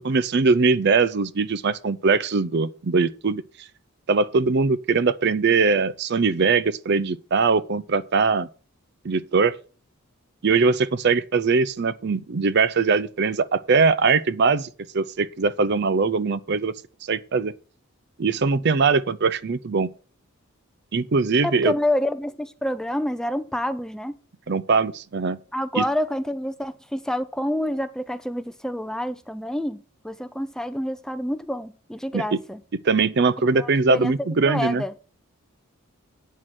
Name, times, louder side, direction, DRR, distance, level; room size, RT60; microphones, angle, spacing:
voice 1, 0.0-3.4 4.1-8.5 9.0-9.6 10.4-14.7 14.9-16.7 17.1-17.5 18.2-19.9 20.9-21.7 24.5-25.4 25.7-25.8 32.1-32.4 32.8-34.8, right 4 dB, 50° right, 0.5 m, -21 dB
voice 2, 21.4-24.1 25.5-32.6 33.5-34.9, left 1 dB, 5° left, 0.4 m, -28 dB
9.0 x 6.5 x 6.1 m
head